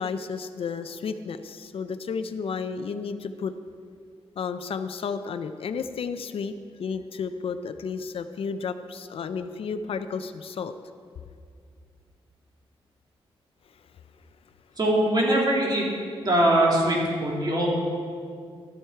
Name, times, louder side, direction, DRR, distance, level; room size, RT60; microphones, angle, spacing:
voice 1, 0.0-3.5 4.4-6.5 6.8-10.7, left 5 dB, 65° left, 10 dB, 0.5 m, -32 dB
voice 2, 14.8-15.9 16.2-17.7, right 1 dB, 45° right, -3 dB, 2.7 m, -22 dB
12.0 x 7.9 x 4.6 m, 2.2 s
cardioid pair, 80°, 10 cm